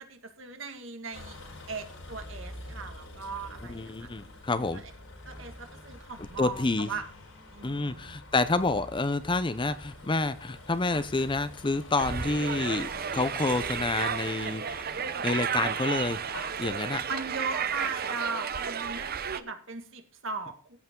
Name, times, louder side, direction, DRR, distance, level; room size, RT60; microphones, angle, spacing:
voice 1, 0.1-1.4 1.7-4.1 5.3-7.0 7.5-8.1 17.1-20.8, right 4 dB, 65° right, 6 dB, 1.9 m, -38 dB
Vehicle, 1.1-18.1, left 1 dB, 85° left, 4.5 m, -46 dB
voice 2, 3.7-4.8 6.4-6.9 7.6-14.9 15.2-16.2 16.6-17.0, left 3 dB, 25° left, 13 dB, 0.6 m, -28 dB
sound 1, 12.0-19.4, right 7 dB, 50° right, 0.7 m, -33 dB
14.5 x 8.2 x 3.8 m, 0.38 s
head